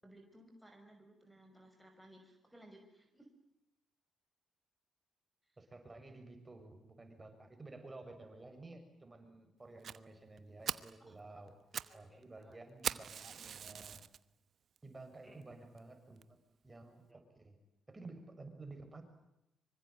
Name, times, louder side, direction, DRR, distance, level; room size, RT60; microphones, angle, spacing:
voice 1, 0.0-3.3 5.4-5.6 11.1-11.2 11.9-12.6 15.2-15.4 17.1-17.2, right 1 dB, 5° right, 3 dB, 5.7 m, -60 dB
voice 2, 5.6-11.5 11.9-14.0 14.8-16.4 16.6-17.0 17.4-17.6 17.9-19.0, right 2 dB, 25° right, 7 dB, 6.9 m, -53 dB
Fire, 9.8-10.0 10.4-10.5 10.7-11.0 11.5-12.0 12.2-12.3 12.8-14.2 14.8-14.9 15.4-15.5 15.8-15.9 16.2-16.3, right 7 dB, 60° right, 1.0 m, -40 dB
25.5 x 24.0 x 9.2 m, 0.86 s
supercardioid pair, 60°, 0 cm